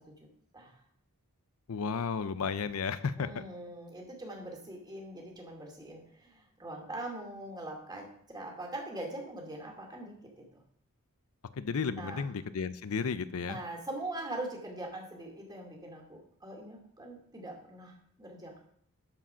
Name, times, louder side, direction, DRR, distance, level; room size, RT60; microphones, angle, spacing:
voice 1, 1.7-3.4 11.6-13.6, left 5 dB, 70° left, 14 dB, 0.5 m, -33 dB
voice 2, 3.2-8.1 8.3-10.6 11.9-12.3 13.4-18.6, right 1 dB, 20° right, 1 dB, 2.4 m, -42 dB
13.0 x 5.0 x 5.6 m, 0.66 s
head